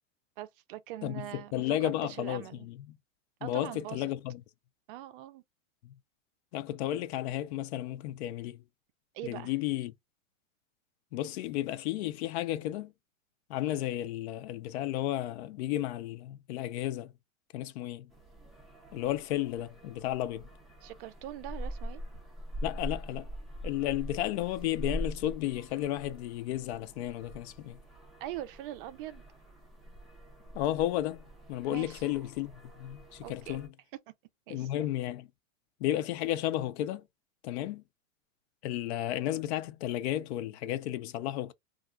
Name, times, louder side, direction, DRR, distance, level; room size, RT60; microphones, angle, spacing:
voice 1, 0.4-1.6 2.0-2.7 3.4-4.1 4.9-5.4 9.1-9.5 20.8-22.0 28.2-29.2 31.7-32.0 33.2-33.6 34.1-34.2 34.5-34.7, right 14 dB, 45° right, 0.5 m, -42 dB
voice 2, 1.0-3.0 3.4-4.4 5.8-5.9 6.5-8.6 9.2-9.9 11.1-12.9 13.5-17.1 17.5-18.1 18.9-20.5 22.6-23.3 23.6-27.8 30.5-32.5 32.8-33.7 34.5-35.3 35.8-37.1 37.4-37.8 38.6-41.5, left 13 dB, 55° left, 0.5 m, -33 dB
sound 1, 18.1-33.7, equal, ahead, 0.7 m, -43 dB
2.4 x 2.2 x 3.7 m
hypercardioid pair, 135°, 39 cm